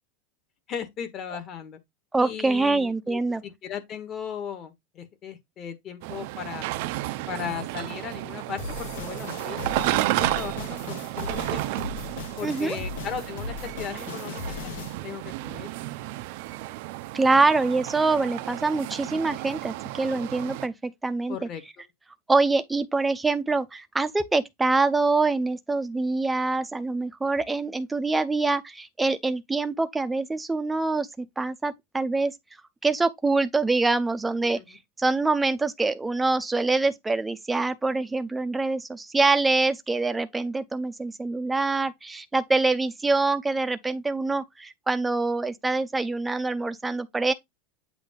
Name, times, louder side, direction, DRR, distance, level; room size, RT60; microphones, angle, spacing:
voice 1, 0.7-1.8 2.2-6.6 7.3-11.7 12.4-14.7 15.0-15.7 21.3-21.6 34.4-34.8, left 7 dB, 30° left, 1.4 m, -37 dB
voice 2, 2.1-3.4 12.4-12.8 17.1-21.5 22.3-32.3 32.8-47.3, right 3 dB, 10° right, 0.6 m, -25 dB
sound 1, 6.0-20.7, right 17 dB, 60° right, 0.5 m, -32 dB
sound 2, 8.6-15.0, left 5 dB, 80° left, 1.2 m, -38 dB
8.0 x 2.7 x 5.0 m
supercardioid pair, 150°, 0 cm